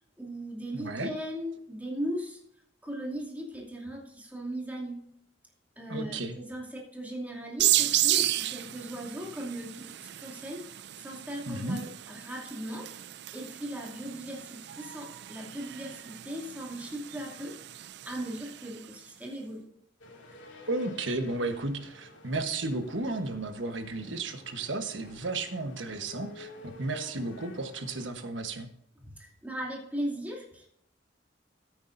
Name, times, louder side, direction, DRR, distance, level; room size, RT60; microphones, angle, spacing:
voice 1, 0.2-2.4 2.8-5.1 5.8-10.7 11.0-12.9 13.3-19.6 29.0-30.7, equal, 10° right, -2 dB, 2.6 m, -38 dB
voice 2, 0.7-1.1 5.9-6.4 11.5-11.8 20.7-28.7, right 2 dB, 80° right, 7 dB, 1.2 m, -33 dB
sound 1, 7.6-18.9, right 14 dB, 60° right, 0.4 m, -33 dB
sound 2, 20.0-28.1, left 2 dB, 85° left, 2.5 m, -50 dB
13.5 x 9.4 x 2.6 m, 0.71 s
head